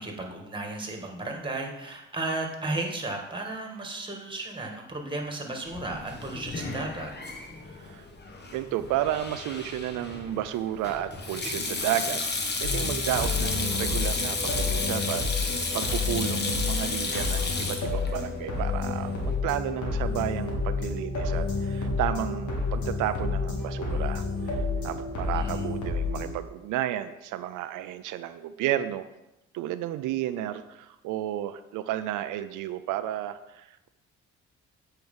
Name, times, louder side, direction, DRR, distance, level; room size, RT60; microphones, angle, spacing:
voice 1, 0.0-7.1 25.3-25.6, right 2 dB, 15° right, 2 dB, 1.8 m, -34 dB
Sink (filling or washing), 5.7-19.3, left 3 dB, 35° left, 1.2 m, -33 dB
voice 2, 8.5-12.2 12.6-29.1 29.5-33.9, right 12 dB, 90° right, 11 dB, 0.5 m, -32 dB
sound 1, 12.6-26.3, left 4 dB, 80° left, 2.0 m, -30 dB
sound 2, 18.1-18.4 18.9-19.2 19.7-19.9 20.5-20.7 21.2-21.5 22.0-22.3 22.8-23.0 23.6-25.4, equal, ahead, 3.2 m, -49 dB
7.9 x 4.5 x 5.4 m, 0.95 s
cardioid pair, 90°, 30 cm